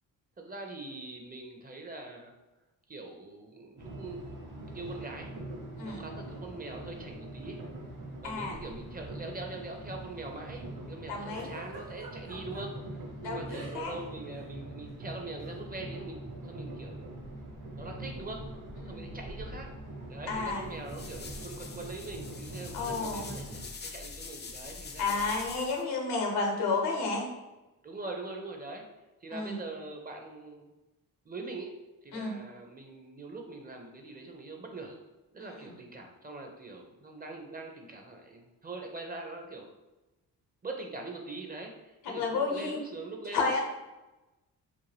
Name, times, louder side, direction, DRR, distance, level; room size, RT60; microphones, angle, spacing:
voice 1, 0.4-2.3 2.9-4.2 4.7-5.3 5.8-7.6 8.2-17.1 17.8-18.4 18.9-19.7 20.1-25.4 27.8-28.8 29.2-30.7 31.3-31.7 32.0-35.0 35.3-39.7 40.6-43.6, right 3 dB, 25° right, 2 dB, 0.5 m, -43 dB
sound 1, 3.8-23.7, right 1 dB, 50° right, 1.0 m, -43 dB
voice 2, 8.2-8.6 11.1-11.5 13.2-13.9 18.9-19.0 20.3-20.6 22.7-23.3 25.0-27.3 29.3-29.6 32.1-32.3 35.4-35.6 42.0-42.8 43.3-43.6, left 4 dB, 80° left, 0 dB, 0.8 m, -31 dB
Giggle, 11.3-12.6 13.5-14.0 14.2-14.5 15.4-15.6, right 2 dB, 75° right, 1.1 m, -46 dB
sound 2, 20.4-25.8, left 4 dB, 30° left, 0.4 m, -44 dB
2.6 x 2.2 x 3.2 m, 1.1 s
supercardioid pair, 55°, 39 cm